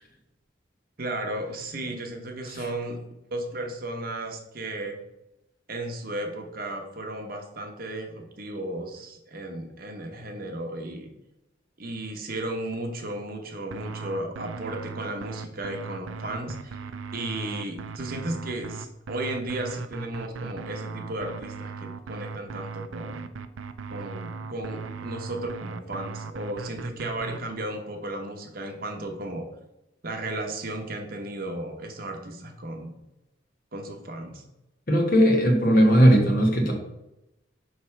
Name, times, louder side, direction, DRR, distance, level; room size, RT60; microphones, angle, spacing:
voice 1, 1.0-3.0 3.3-5.0 5.7-11.1 11.8-16.8 17.1-23.3 23.9-29.4 30.0-32.9 33.7-34.4, right 1 dB, 50° right, 3 dB, 0.9 m, -34 dB
sound 1, 13.7-27.4, right 4 dB, 90° right, 0.4 m, -38 dB
voice 2, 34.9-36.7, equal, 45° left, 2 dB, 1.2 m, -18 dB
5.7 x 3.2 x 5.7 m, 0.92 s
head